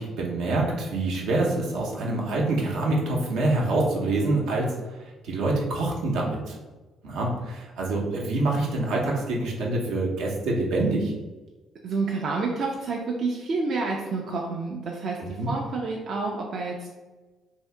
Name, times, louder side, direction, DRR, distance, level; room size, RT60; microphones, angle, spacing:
voice 1, 0.0-6.6 7.0-11.1 15.2-15.5, right 2 dB, 85° right, -2 dB, 0.7 m, -26 dB
voice 2, 11.8-16.9, right 3 dB, 55° right, 0 dB, 0.4 m, -29 dB
2.7 x 2.7 x 3.3 m, 1.2 s
cardioid pair, 90°, 0 cm